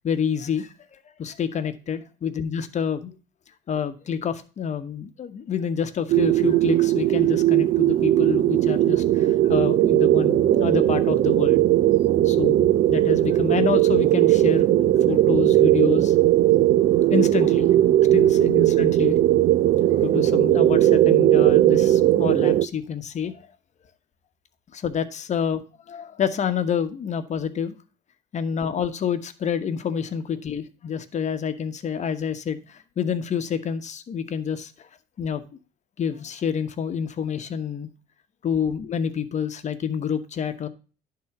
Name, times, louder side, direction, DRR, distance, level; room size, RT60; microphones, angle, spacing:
voice 1, 0.0-3.2 3.7-11.6 12.2-16.1 17.1-17.7 18.1-19.2 19.9-23.4 24.7-27.8 28.3-34.9 35.2-35.4 36.0-37.9 38.4-40.7, left 7 dB, 45° left, 10 dB, 1.1 m, -28 dB
sound 1, 6.1-22.7, right 13 dB, 55° right, 0.5 m, -18 dB
11.0 x 3.9 x 5.8 m, 0.36 s
cardioid pair, 110°, 17 cm